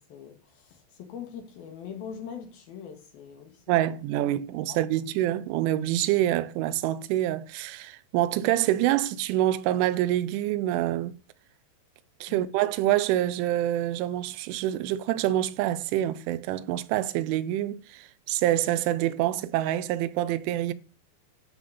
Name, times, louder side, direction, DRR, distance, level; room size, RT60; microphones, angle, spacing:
voice 1, 0.0-4.0 4.7-4.8 12.3-12.6, left 7 dB, 65° left, 2.9 m, -42 dB
voice 2, 3.7-11.2 12.2-20.7, right 13 dB, 85° right, 3.0 m, -26 dB
12.5 x 5.4 x 6.8 m
omnidirectional pair, 5.5 m